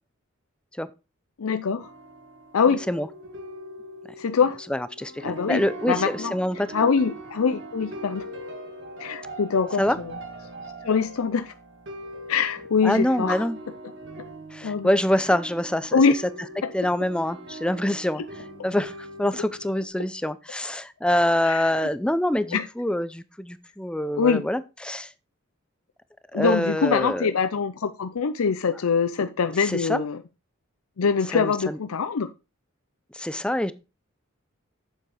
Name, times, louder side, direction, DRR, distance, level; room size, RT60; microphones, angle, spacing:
voice 1, 1.4-1.9 2.5-2.8 4.2-4.6 5.2-6.3 6.7-8.3 9.0-10.1 10.8-11.5 12.3-13.5 14.6-14.9 15.9-16.2 16.6-16.7 21.4-21.7 22.5-22.7 24.1-24.4 26.3-30.2 31.0-32.3, left 5 dB, 85° left, 9 dB, 0.5 m, -24 dB
sound 1, 1.8-19.9, right 1 dB, 60° right, 2.1 m, -41 dB
voice 2, 4.7-6.9 9.8-10.0 12.8-13.6 14.5-16.0 16.7-18.2 18.6-25.1 26.3-27.3 29.6-30.0 31.3-31.8 33.1-33.7, left 1 dB, 5° left, 14 dB, 0.5 m, -25 dB
7.8 x 7.1 x 4.9 m, 0.30 s
head